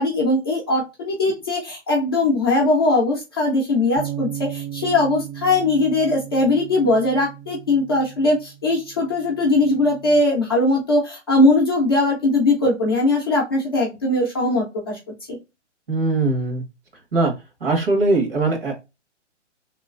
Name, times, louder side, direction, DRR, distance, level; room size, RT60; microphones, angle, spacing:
voice 1, 0.0-15.0 15.3-15.4, left 2 dB, 20° left, -4 dB, 0.6 m, -20 dB
sound 1, 4.0-10.2, right 11 dB, 80° right, 0.7 m, -36 dB
voice 2, 15.9-16.6 17.1-17.3 17.6-18.7, right 2 dB, 50° right, 2 dB, 1.5 m, -20 dB
3.1 x 3.0 x 2.3 m, 0.25 s
hypercardioid pair, 170°, 36 cm